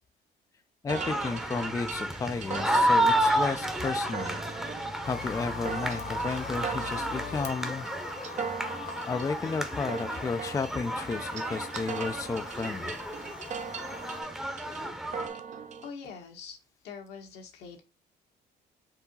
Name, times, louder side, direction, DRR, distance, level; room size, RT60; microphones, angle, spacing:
voice 1, 0.8-4.4 5.1-7.9 9.1-13.0, left 4 dB, 20° left, 0.4 m, -33 dB
sound 1, 0.9-15.3, right 1 dB, 5° right, 0.8 m, -31 dB
sound 2, 0.9-15.9, right 6 dB, 45° right, 0.6 m, -40 dB
sound 3, 5.0-14.2, left 5 dB, 55° left, 1.3 m, -43 dB
voice 2, 15.3-16.6 16.8-17.8, left 6 dB, 80° left, 1.5 m, -44 dB
4.6 x 2.8 x 4.0 m
cardioid pair, 110°, 17 cm